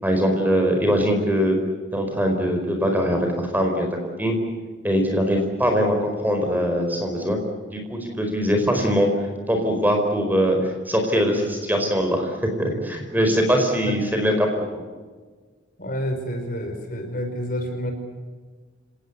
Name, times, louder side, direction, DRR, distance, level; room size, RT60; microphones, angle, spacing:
voice 1, 0.0-1.6 1.9-3.9 4.2-4.4 4.8-7.4 7.7-9.1 9.5-14.8, equal, 10° right, 3 dB, 4.7 m, -22 dB
voice 2, 15.8-17.9, equal, 45° left, 5 dB, 5.3 m, -28 dB
30.0 x 18.5 x 8.2 m, 1.4 s
head